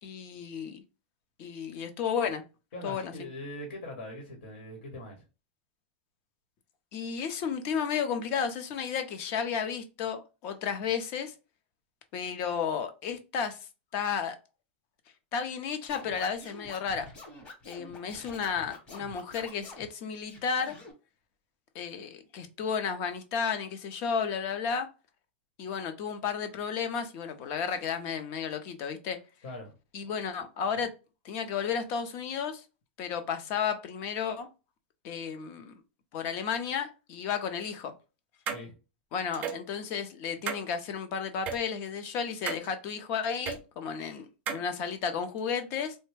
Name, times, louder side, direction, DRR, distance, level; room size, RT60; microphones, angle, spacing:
voice 1, 0.0-0.8 1.4-2.4 2.8-3.1 6.9-11.3 12.1-13.6 13.9-14.4 15.3-17.1 17.7-20.8 21.7-24.9 25.6-29.2 29.9-30.9 31.2-32.6 33.0-34.5 35.0-35.7 36.1-37.9 39.1-46.0, left 6 dB, 40° left, 0.6 m, -33 dB
voice 2, 2.7-5.2 29.4-29.7 30.8-30.9 38.5-38.7, left 1 dB, 75° left, 1.1 m, -41 dB
Scratching (performance technique), 15.9-19.9 20.3-20.9, left 2 dB, 20° left, 1.0 m, -47 dB
sound 1, 38.5-38.6 39.3-39.6 40.5-40.6 41.5-41.6 42.5-42.7 43.5-43.6 44.5-44.6, right 7 dB, 25° right, 0.5 m, -33 dB
3.2 x 2.1 x 3.2 m
supercardioid pair, 150°, 6 cm